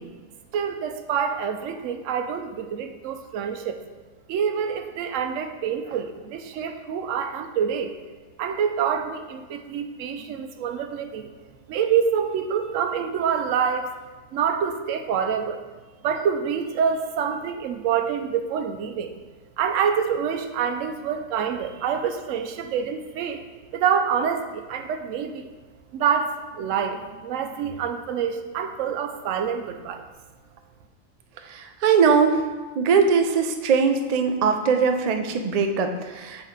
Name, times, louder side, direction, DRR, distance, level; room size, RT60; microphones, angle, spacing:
voice 1, 0.5-3.8 4.3-7.9 8.4-11.3 11.7-13.9 14.3-15.6 16.0-19.1 19.6-23.4 23.7-25.5 25.9-30.0, right 7 dB, 80° right, 7 dB, 1.0 m, -26 dB
voice 2, 31.5-32.4 32.8-36.5, right 5 dB, 60° right, 5 dB, 0.4 m, -21 dB
8.0 x 4.1 x 3.7 m, 1.3 s
omnidirectional pair, 1.3 m